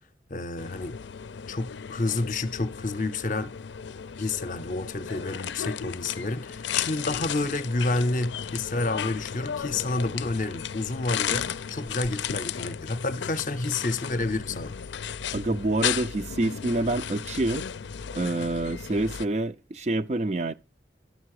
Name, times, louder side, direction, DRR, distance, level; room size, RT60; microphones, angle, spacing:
voice 1, 0.3-1.0 1.5-3.5 4.2-14.7, left 2 dB, 45° left, 0.6 m, -29 dB
sound 1, 0.6-19.3, left 8 dB, 90° left, 0.5 m, -35 dB
voice 2, 15.3-17.7 18.1-20.5, right 2 dB, 40° right, 0.5 m, -27 dB
12.0 x 6.8 x 4.8 m
head